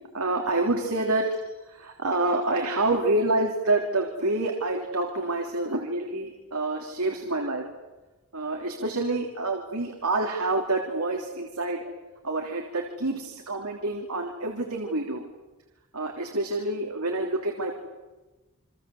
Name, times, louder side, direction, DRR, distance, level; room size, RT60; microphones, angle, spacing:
voice 1, 0.1-1.4 1.7-7.6 8.3-11.8 12.2-15.2 15.9-17.7, right 2 dB, 80° right, 2 dB, 3.4 m, -27 dB
29.0 x 25.0 x 7.9 m, 1.1 s
head